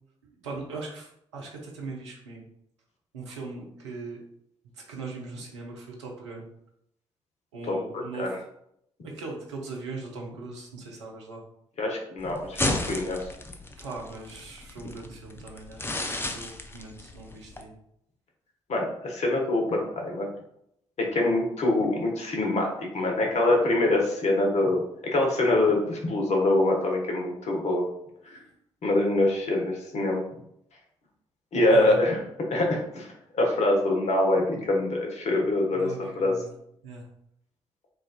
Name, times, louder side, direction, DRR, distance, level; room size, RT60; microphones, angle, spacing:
voice 1, 0.4-2.4 3.1-4.2 4.9-6.5 7.5-8.3 9.0-11.4 13.8-17.7 28.3-28.5 31.7-32.0 35.7-36.5 36.8-37.1, right 3 dB, 85° right, -1 dB, 0.6 m, -40 dB
voice 2, 7.7-8.4 11.8-13.2 18.7-20.3 21.0-27.9 28.8-30.2 31.5-32.2 32.5-36.3, left 2 dB, 50° left, 1 dB, 1.0 m, -25 dB
sound 1, 12.2-17.6, left 2 dB, 15° left, 0.6 m, -34 dB
4.6 x 2.5 x 2.4 m, 0.75 s
figure-of-eight pair, 40°, 15 cm